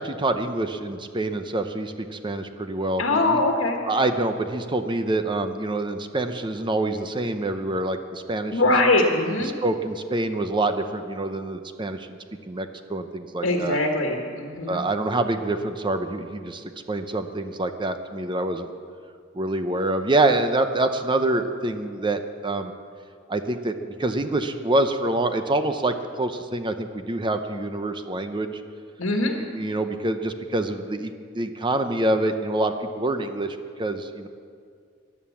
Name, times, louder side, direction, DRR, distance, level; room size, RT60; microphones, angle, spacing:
voice 1, 0.0-3.4 3.9-8.6 9.4-12.2 12.5-13.8 14.7-18.7 19.3-22.7 23.3-28.6 29.4-34.3, right 2 dB, 25° right, 8 dB, 0.7 m, -26 dB
voice 2, 3.0-3.8 8.5-9.5 13.4-14.8 29.0-29.3, left 2 dB, 80° left, 1 dB, 1.4 m, -22 dB
14.5 x 10.5 x 7.2 m, 2.2 s
head